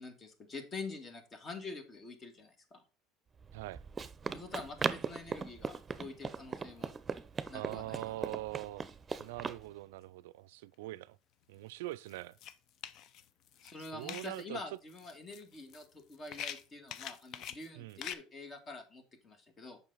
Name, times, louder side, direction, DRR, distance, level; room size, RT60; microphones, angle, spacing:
voice 1, 0.0-2.8 4.3-6.9 7.5-8.2 13.6-19.8, left 3 dB, 35° left, 1.9 m, -46 dB
Run, 3.4-9.6, right 5 dB, 30° right, 0.7 m, -39 dB
voice 2, 7.5-8.8 9.2-11.2 11.5-12.4 13.8-14.6 17.8-18.0, right 17 dB, 80° right, 0.3 m, -43 dB
sound 1, 11.6-11.7 12.1-14.4 14.9-18.1, left 9 dB, 60° left, 0.6 m, -45 dB
7.3 x 5.5 x 4.0 m
hypercardioid pair, 75°, 0 cm